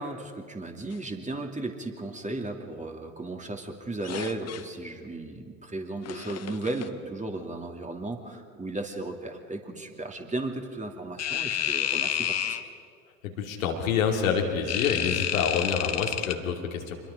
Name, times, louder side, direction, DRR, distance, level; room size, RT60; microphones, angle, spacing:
voice 1, 0.0-12.6, right 2 dB, 20° right, 3 dB, 2.8 m, -35 dB
sound 1, 4.0-4.6 6.0-6.9 11.2-12.6 14.7-16.3, left 10 dB, 40° left, 1.3 m, -30 dB
voice 2, 13.2-16.9, left 6 dB, 75° left, 1 dB, 2.7 m, -27 dB
26.5 x 22.0 x 5.1 m, 2.2 s
figure-of-eight pair, 60°, 40 cm